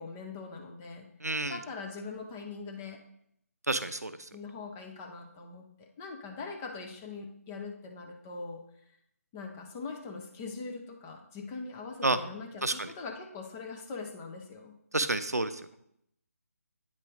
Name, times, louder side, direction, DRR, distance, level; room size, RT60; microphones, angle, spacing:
voice 1, 0.0-1.1 1.5-3.0 4.3-8.6 9.3-14.7, left 4 dB, 10° left, 2 dB, 0.3 m, -42 dB
voice 2, 1.2-1.6 3.7-4.2 12.0-12.2 12.6-12.9 14.9-15.5, right 2 dB, 80° right, 12 dB, 0.5 m, -29 dB
9.0 x 3.1 x 5.0 m, 0.73 s
figure-of-eight pair, 150°, 9 cm